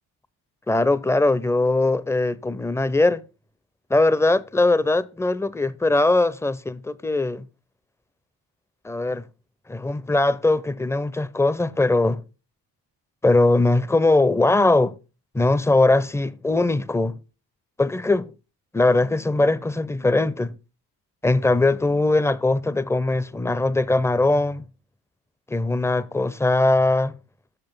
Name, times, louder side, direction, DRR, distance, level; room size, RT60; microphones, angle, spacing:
voice 1, 0.7-3.2 3.9-7.5 8.8-9.2 9.7-12.2 13.2-14.9 15.3-17.1 17.8-18.3 18.7-20.6 21.2-24.6 25.5-27.1, left 2 dB, 5° left, 0.6 m, -20 dB
8.1 x 6.5 x 5.5 m
supercardioid pair, 65°, 41 cm